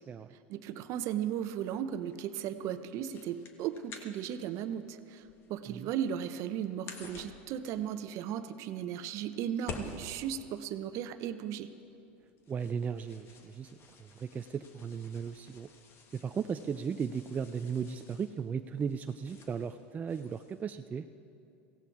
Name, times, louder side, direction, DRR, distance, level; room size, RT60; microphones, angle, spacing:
voice 1, 0.5-5.2 5.5-11.7, right 9 dB, 55° right, 11 dB, 0.8 m, -36 dB
sound 1, 0.9-20.7, left 4 dB, 40° left, 1.5 m, -52 dB
voice 2, 12.5-13.7 14.2-15.7 16.1-21.1, right 6 dB, 25° right, 8 dB, 0.4 m, -36 dB
16.5 x 16.5 x 4.7 m, 2.6 s
hypercardioid pair, 105°, 6 cm